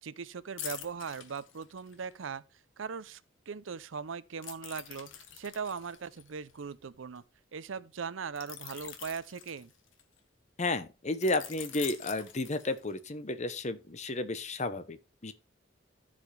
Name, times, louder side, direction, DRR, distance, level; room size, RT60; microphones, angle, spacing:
voice 1, 0.0-2.4 2.8-3.2 3.5-7.2 7.5-9.7, right 5 dB, 85° right, 0.6 m, -39 dB
sound 1, 0.6-2.1 4.4-7.2 8.4-10.2 11.2-13.1 13.5-13.7, left 9 dB, 80° left, 1.4 m, -45 dB
voice 2, 10.6-15.3, left 2 dB, 35° left, 0.9 m, -32 dB
14.5 x 5.1 x 3.3 m
head